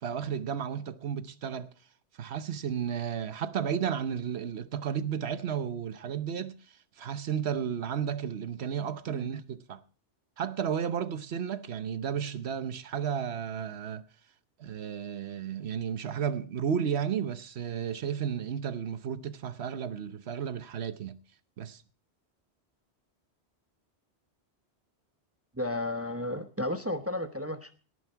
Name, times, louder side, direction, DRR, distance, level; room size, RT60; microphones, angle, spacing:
voice 1, 0.0-1.7 2.2-6.6 7.0-9.8 10.4-14.0 14.6-21.2 21.6-21.8, right 8 dB, 75° right, 1.1 m, -33 dB
voice 2, 25.6-27.7, left 1 dB, 15° right, 0.9 m, -33 dB
18.0 x 9.5 x 4.5 m
omnidirectional pair, 1.1 m